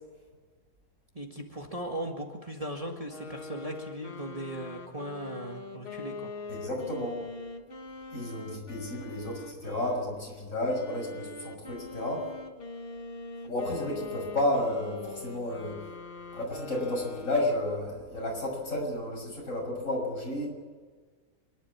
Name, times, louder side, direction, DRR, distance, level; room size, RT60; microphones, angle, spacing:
voice 1, 1.1-6.3, right 1 dB, 25° right, 1 dB, 1.9 m, -38 dB
sound 1, 3.1-10.1 10.7-17.8, left 3 dB, 40° left, 1.7 m, -43 dB
voice 2, 6.5-7.2 8.1-12.3 13.4-15.8 16.3-20.5, left 1 dB, 60° left, 0 dB, 6.6 m, -32 dB
27.0 x 11.5 x 8.7 m, 1.5 s
omnidirectional pair, 1.6 m